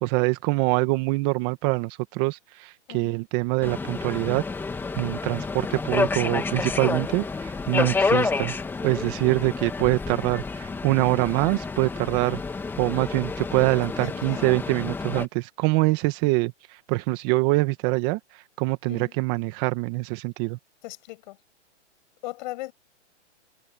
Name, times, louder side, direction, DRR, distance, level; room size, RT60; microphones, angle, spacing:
voice 1, 0.0-4.4 4.9-8.5 8.8-12.4 12.8-16.5 16.9-18.2 18.6-20.6, right 22 dB, 25° right, 1.7 m, -24 dB
Subway metro underground, 3.6-15.2, left 4 dB, 5° left, 2.0 m, -29 dB
voice 2, 14.0-14.7 18.9-19.2 20.8-21.4 22.2-22.7, left 19 dB, 40° left, 7.1 m, -38 dB
hypercardioid pair, 155°, 35 cm